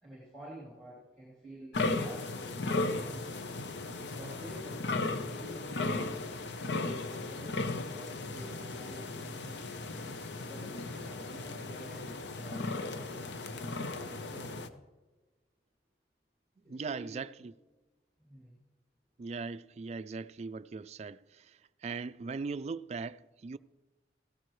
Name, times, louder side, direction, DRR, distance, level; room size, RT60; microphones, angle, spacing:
voice 1, 0.0-3.3 4.1-9.9 10.4-13.3 13.8-14.5 16.6-17.2 18.2-18.6, right 1 dB, 5° left, 2.9 m, -50 dB
sound 1, 1.7-14.7, left 2 dB, 85° left, 0.8 m, -36 dB
voice 2, 16.7-17.5 19.2-23.6, right 4 dB, 35° right, 0.3 m, -39 dB
15.5 x 13.5 x 3.2 m
head